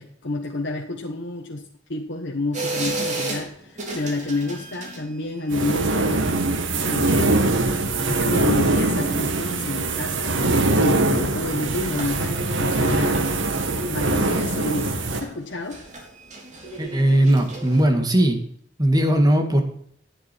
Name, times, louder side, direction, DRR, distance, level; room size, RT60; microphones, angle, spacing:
voice 1, 0.0-1.6 1.9-6.4 6.8-7.5 8.1-13.4 13.6-15.8, left 2 dB, 70° left, 0 dB, 1.3 m, -29 dB
sound 1, 2.5-17.8, right 2 dB, 40° right, 3.9 m, -36 dB
sound 2, 5.5-15.2, right 2 dB, 85° right, 1.5 m, -22 dB
voice 2, 16.8-18.4 18.8-19.6, right 1 dB, 20° right, 4 dB, 2.0 m, -18 dB
11.0 x 10.0 x 4.5 m, 0.65 s
head